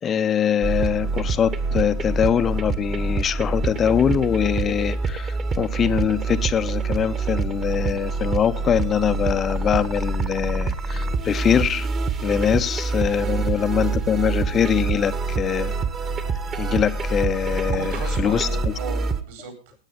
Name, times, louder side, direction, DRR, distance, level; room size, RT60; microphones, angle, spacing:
voice 1, 0.0-11.9 12.2-15.7 16.6-18.7, left 8 dB, 25° left, 0.6 m, -23 dB
sound 1, 0.6-19.2, right 4 dB, 25° right, 1.4 m, -26 dB
voice 2, 17.7-19.7, right 6 dB, 55° right, 4.4 m, -36 dB
17.0 x 9.1 x 5.4 m
figure-of-eight pair, 90°, 0 cm